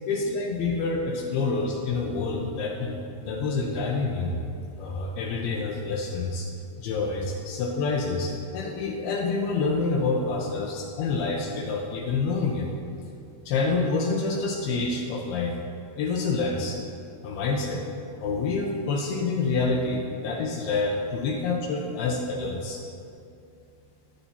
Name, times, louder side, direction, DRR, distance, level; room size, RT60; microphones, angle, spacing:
voice 1, 0.1-4.3 4.8-6.5 6.8-12.7 13.5-15.6 16.0-16.8 17.2-17.8 18.2-20.0 20.2-22.8, left 3 dB, 80° left, -1 dB, 2.7 m, -27 dB
20.5 x 10.0 x 2.8 m, 2.5 s
omnidirectional pair, 4.5 m